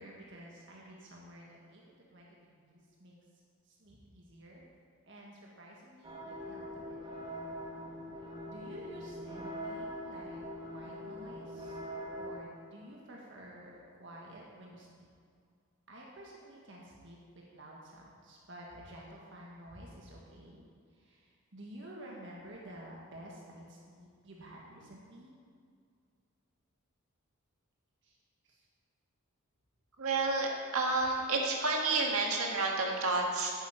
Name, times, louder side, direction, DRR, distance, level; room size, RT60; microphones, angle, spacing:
voice 1, 0.0-3.1 3.8-4.6 5.1-7.0 8.5-10.4 10.7-11.8 12.1-15.1 15.9-20.7 21.0-21.2 21.5-25.3 28.0-28.1 28.5-28.6, right 1 dB, 55° right, -3 dB, 1.7 m, -51 dB
sound 1, 6.0-12.4, equal, 20° right, 1.3 m, -43 dB
voice 2, 30.0-30.5 30.7-33.5, right 3 dB, 80° right, 0 dB, 1.8 m, -30 dB
11.0 x 9.4 x 5.1 m, 2.2 s
head